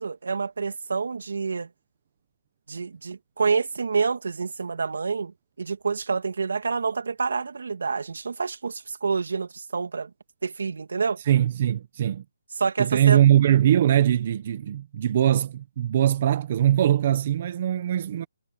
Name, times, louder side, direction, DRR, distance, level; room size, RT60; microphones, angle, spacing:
voice 1, 0.0-1.7 2.7-10.1 10.4-11.2 12.6-13.2, right 5 dB, 70° right, 2.4 m, -28 dB
voice 2, 11.3-12.2 12.8-18.3, right 11 dB, 30° right, 0.9 m, -21 dB
hypercardioid pair, 175°, 0 cm